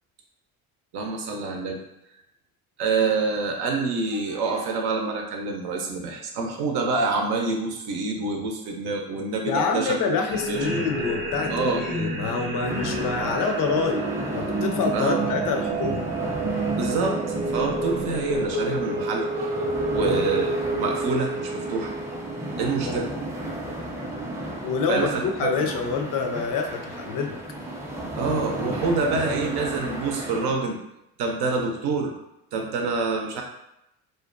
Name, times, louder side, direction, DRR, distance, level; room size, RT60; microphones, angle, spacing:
voice 1, 0.9-1.8 2.8-10.2 10.5-10.9 11.5-11.8 14.9-15.3 16.7-17.2 17.5-19.5 19.9-21.9 22.6-23.1 24.9-25.7 28.2-30.8 31.2-32.1 32.5-33.4, right 4 dB, 60° right, 2 dB, 0.7 m, -27 dB
voice 2, 9.5-14.0 14.3-16.0 20.0-20.3 22.9-23.0 24.6-27.4, left 5 dB, 50° left, 4 dB, 0.5 m, -27 dB
sound 1, 10.3-23.0, right 2 dB, 30° right, 0.8 m, -29 dB
sound 2, 12.6-30.5, right 1 dB, 5° right, 0.5 m, -34 dB
2.5 x 2.1 x 2.5 m, 0.85 s
hypercardioid pair, 60°, 42 cm